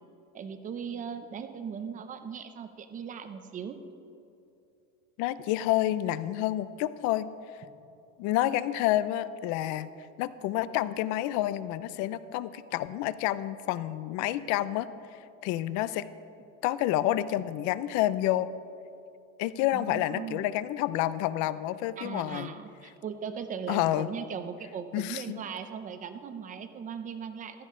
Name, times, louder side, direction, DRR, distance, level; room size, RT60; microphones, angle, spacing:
voice 1, 0.3-3.8 19.7-20.5 22.0-27.7, right 7 dB, 20° right, 9 dB, 0.5 m, -38 dB
voice 2, 5.2-7.3 8.2-16.1 16.6-18.5 19.4-22.5 23.7-24.1 24.9-25.4, left 14 dB, 50° left, 16 dB, 0.5 m, -29 dB
15.0 x 12.5 x 3.7 m, 2.7 s
cardioid pair, 160°, 40 cm